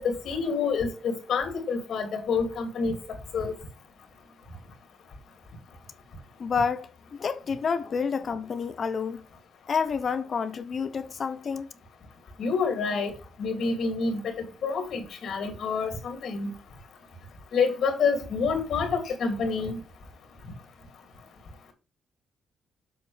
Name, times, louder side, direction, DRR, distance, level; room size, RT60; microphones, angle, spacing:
voice 1, 0.0-3.0 3.3-3.6 12.4-13.1 13.4-14.4 14.6-16.5 17.5-19.8, left 5 dB, 65° left, 2.6 m, -27 dB
voice 2, 6.4-6.9 7.2-9.2 9.7-11.7, left 5 dB, 45° left, 0.7 m, -29 dB
7.7 x 6.4 x 3.3 m
cardioid pair, 90°, 0 cm